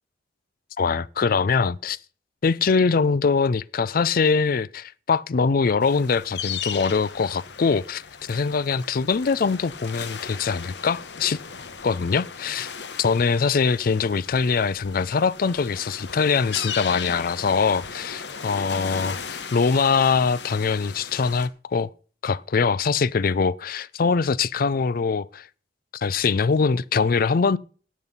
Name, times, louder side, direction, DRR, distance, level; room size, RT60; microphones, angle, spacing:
voice 1, 0.8-2.0 2.4-11.4 11.8-12.7 13.0-21.9 22.2-25.5 25.9-27.6, left 5 dB, 55° left, 0.4 m, -23 dB
sound 1, 5.8-21.5, left 6 dB, 75° left, 1.1 m, -37 dB
11.0 x 8.3 x 5.6 m
head